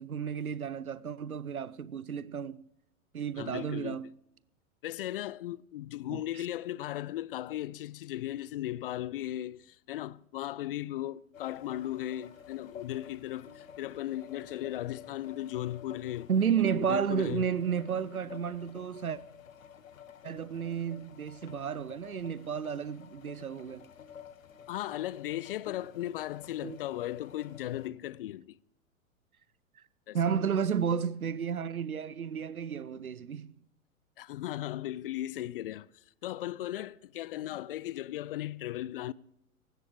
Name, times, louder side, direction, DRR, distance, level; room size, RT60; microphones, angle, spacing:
voice 1, 0.0-2.6 3.1-4.1 6.1-6.4 16.3-19.2 20.2-23.9 26.6-26.8 30.1-33.5, right 7 dB, 85° right, 0.7 m, -32 dB
voice 2, 3.4-4.0 4.8-16.3 16.6-17.5 24.7-28.6 30.1-30.2 34.2-35.9 36.2-39.1, left 14 dB, 45° left, 0.5 m, -37 dB
sound 1, 11.3-27.9, left 8 dB, 70° left, 1.5 m, -51 dB
18.5 x 15.5 x 3.2 m
figure-of-eight pair, 100°, 42 cm